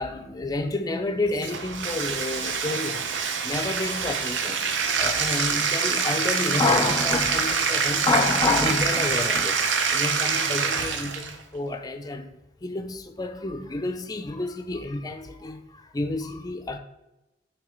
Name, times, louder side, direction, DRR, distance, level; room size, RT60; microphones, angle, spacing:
voice 1, 0.0-3.1 3.4-4.6 5.0-9.6 9.9-12.3 12.6-16.8, left 2 dB, 20° left, 0.4 m, -29 dB
Bathtub (filling or washing), 1.3-11.4, right 5 dB, 80° right, 0.6 m, -25 dB
6.2 x 3.2 x 5.1 m
head